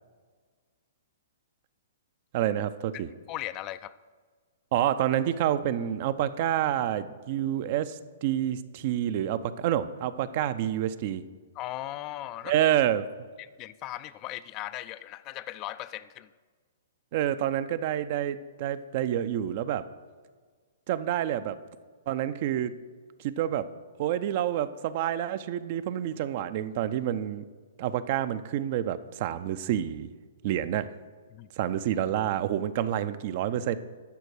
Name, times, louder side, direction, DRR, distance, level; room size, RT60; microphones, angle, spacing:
voice 1, 2.3-3.1 4.7-11.2 12.4-13.1 17.1-19.9 20.9-21.6 22.1-22.7 23.2-23.6 24.0-27.4 27.8-30.1 30.4-30.9 31.6-33.8, right 11 dB, 45° right, 13 dB, 0.4 m, -28 dB
voice 2, 3.3-3.9 11.6-12.5 13.4-16.3 31.3-31.5, left 14 dB, 30° left, 15 dB, 0.3 m, -38 dB
11.5 x 4.5 x 6.3 m, 1.5 s
figure-of-eight pair, 115°, 0 cm